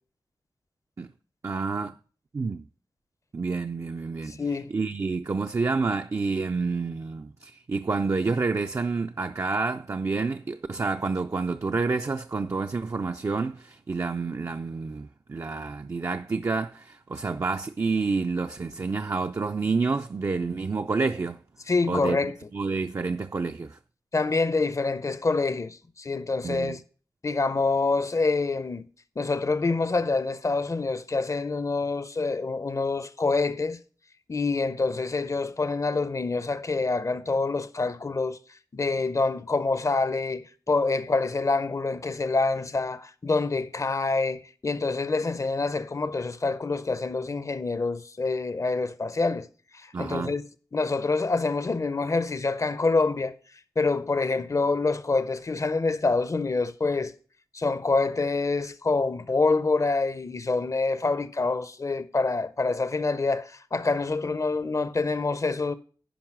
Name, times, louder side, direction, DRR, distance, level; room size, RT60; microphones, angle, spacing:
voice 1, 1.4-2.0 2.3-2.7 3.3-4.3 4.7-21.4 21.9-22.2 22.5-23.8 26.4-26.8 49.9-50.3, right 4 dB, 40° right, 0.4 m, -28 dB
voice 2, 4.3-4.7 21.7-22.4 24.1-26.8 27.2-28.8 29.2-33.8 34.3-38.4 38.7-49.5 49.7-50.4 50.7-53.3 53.8-57.1 57.5-65.7, left 3 dB, 40° left, 0.7 m, -26 dB
10.0 x 5.3 x 6.0 m
wide cardioid pair, 75°, 8 cm